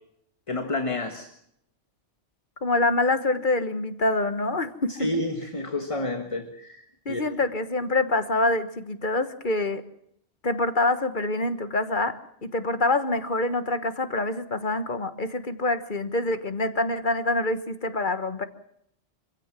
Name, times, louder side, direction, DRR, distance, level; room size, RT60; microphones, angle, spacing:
voice 1, 0.5-1.3 4.9-7.2, left 2 dB, 25° left, 6 dB, 1.6 m, -30 dB
voice 2, 2.6-4.9 7.0-9.8 10.4-18.4, left 2 dB, 45° left, 10 dB, 1.5 m, -26 dB
26.0 x 16.0 x 7.4 m, 0.73 s
omnidirectional pair, 1.2 m